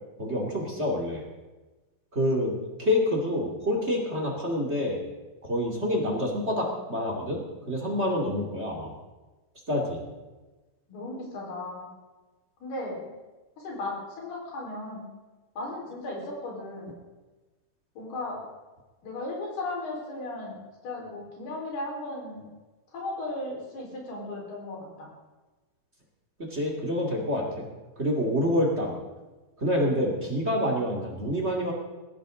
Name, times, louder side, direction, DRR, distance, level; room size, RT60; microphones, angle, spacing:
voice 1, 0.2-1.2 2.1-5.0 5.4-8.9 9.7-10.0 26.5-27.7 28.0-29.0 29.6-31.7, left 1 dB, 20° right, 0 dB, 1.9 m, -27 dB
voice 2, 10.9-11.9 12.6-13.1 13.6-15.1 15.6-16.9 18.0-18.4 19.0-20.6 20.8-22.5 22.9-25.1, left 2 dB, 85° left, -2 dB, 6.4 m, -36 dB
19.5 x 15.0 x 3.8 m, 1.2 s
omnidirectional pair, 4.4 m